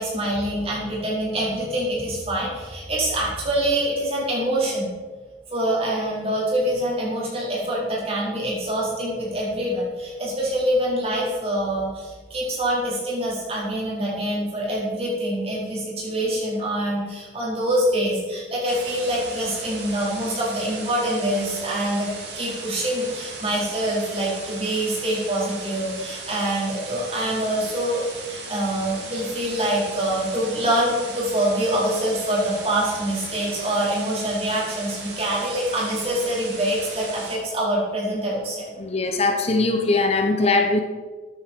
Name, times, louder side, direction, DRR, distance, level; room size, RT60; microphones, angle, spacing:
voice 1, 0.0-4.9 5.5-38.7, right 1 dB, 35° right, -5 dB, 4.6 m, -25 dB
sound 1, 18.6-37.4, right 3 dB, 75° right, 3.5 m, -37 dB
voice 2, 38.8-40.8, left 3 dB, 35° left, 5 dB, 0.9 m, -21 dB
13.5 x 9.4 x 4.5 m, 1.4 s
head